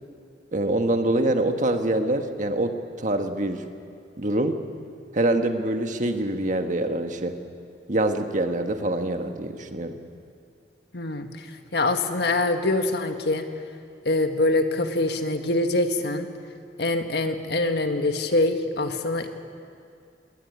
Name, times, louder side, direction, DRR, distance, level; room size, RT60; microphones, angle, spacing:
voice 1, 0.5-3.6 4.2-4.6 5.1-7.4 7.9-10.0, right 1 dB, 45° right, 6 dB, 1.6 m, -25 dB
voice 2, 10.9-11.5 11.7-13.5 14.1-16.3 16.8-19.3, left 2 dB, 65° left, 6 dB, 1.6 m, -24 dB
20.0 x 19.5 x 9.8 m, 2.4 s
head